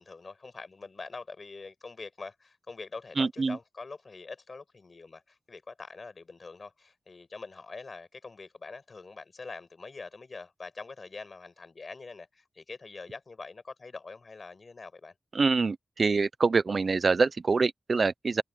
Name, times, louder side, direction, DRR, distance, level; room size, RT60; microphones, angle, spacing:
voice 1, 0.0-15.1, left 4 dB, 50° left, 6.0 m, -44 dB
voice 2, 3.2-3.6 15.3-18.4, right 4 dB, 55° right, 0.7 m, -25 dB
cardioid pair, 70°, 0 cm